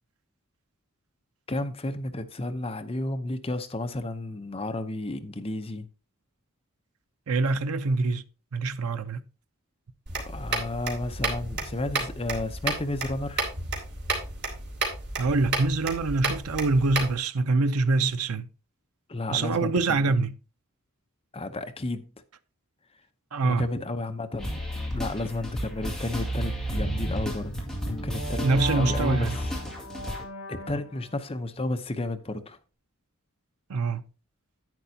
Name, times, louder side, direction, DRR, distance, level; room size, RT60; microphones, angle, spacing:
voice 1, 1.5-5.9 10.2-13.5 19.1-20.1 21.3-22.1 23.3-24.6 24.9-29.5 30.5-32.6, left 2 dB, 25° left, 0.7 m, -32 dB
voice 2, 7.3-8.2 8.5-9.2 15.2-18.5 19.3-20.3 23.3-23.7 28.4-29.4 33.7-34.0, right 3 dB, 85° right, 0.6 m, -25 dB
sound 1, 10.1-17.2, right 3 dB, 50° right, 2.9 m, -32 dB
sound 2, 24.4-30.2, equal, 5° left, 2.2 m, -33 dB
sound 3, 26.7-31.2, equal, 65° left, 3.1 m, -36 dB
10.5 x 9.1 x 2.8 m
head